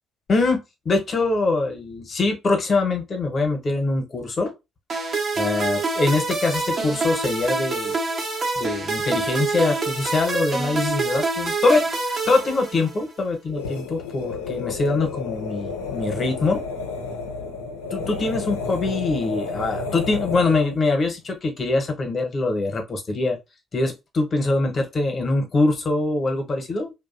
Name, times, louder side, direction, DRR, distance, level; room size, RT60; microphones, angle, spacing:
voice 1, 0.3-0.6 0.8-4.5 5.4-7.9 8.6-16.6 17.9-23.4 23.7-26.9, left 3 dB, 45° left, 0.9 m, -23 dB
sound 1, 4.9-13.2, right 3 dB, 50° right, 0.9 m, -26 dB
sound 2, 13.5-20.8, left 4 dB, 85° left, 0.4 m, -31 dB
2.6 x 2.1 x 2.5 m
hypercardioid pair, 45°, 0 cm